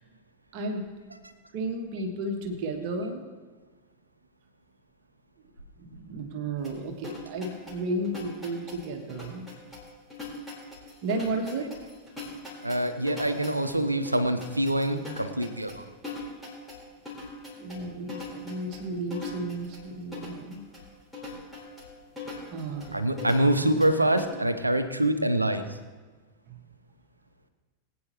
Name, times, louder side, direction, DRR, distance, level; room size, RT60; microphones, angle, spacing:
voice 1, 0.5-0.8 1.5-3.2 5.8-9.5 11.0-11.7 17.6-20.6 22.5-23.0 26.5-26.6, right 2 dB, 45° right, 4 dB, 1.6 m, -33 dB
sound 1, 6.6-24.2, left 3 dB, ahead, 4.2 m, -42 dB
voice 2, 12.6-15.8 22.9-25.7, right 1 dB, 85° right, 10 dB, 0.8 m, -25 dB
21.0 x 9.4 x 3.1 m, 1.3 s
figure-of-eight pair, 90°, 0 cm